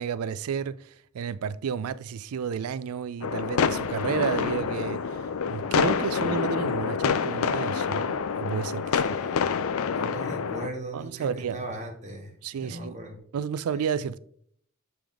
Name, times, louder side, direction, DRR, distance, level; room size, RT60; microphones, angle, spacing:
voice 1, 0.0-5.2 5.5-9.0 10.9-11.6 12.4-13.0 13.3-14.2, right 7 dB, 85° right, 0.4 m, -31 dB
sound 1, 3.2-10.7, left 6 dB, 70° left, 0.4 m, -27 dB
voice 2, 8.8-13.2, right 1 dB, 35° right, 1.4 m, -39 dB
7.5 x 3.5 x 3.6 m
head